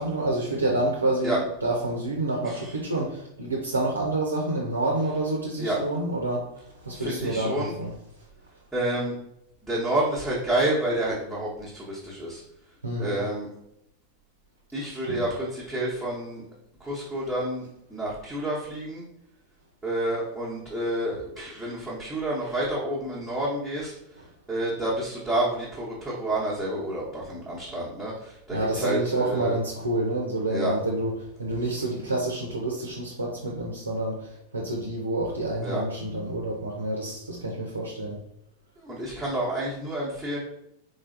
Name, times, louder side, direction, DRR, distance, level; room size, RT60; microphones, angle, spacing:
voice 1, 0.0-6.5 6.8-7.9 12.8-13.2 14.9-15.2 28.5-31.1 31.4-38.2, right 2 dB, 75° right, -1 dB, 0.6 m, -28 dB
voice 2, 2.4-2.8 5.6-5.8 6.9-7.7 8.7-9.1 9.6-12.4 13.0-13.5 14.7-16.4 16.8-19.0 19.8-29.6 30.5-30.8 35.6-35.8 38.8-40.4, right 1 dB, 5° right, -9 dB, 1.0 m, -29 dB
3.8 x 3.3 x 2.5 m, 0.79 s
figure-of-eight pair, 90°, 0 cm